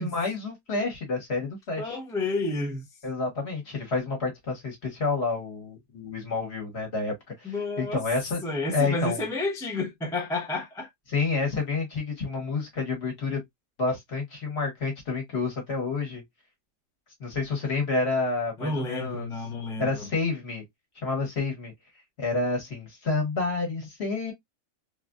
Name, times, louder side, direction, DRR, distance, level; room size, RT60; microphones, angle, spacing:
voice 1, 0.0-2.0 3.0-8.4 8.7-9.2 11.1-13.4 13.8-16.2 17.2-19.3 19.8-20.6 20.9-21.7 22.2-24.3, left 3 dB, 50° left, 1.5 m, -29 dB
voice 2, 1.8-2.9 7.4-8.0 8.4-10.9 18.6-20.1, left 2 dB, 5° left, 0.4 m, -30 dB
3.0 x 2.6 x 2.3 m
omnidirectional pair, 1.5 m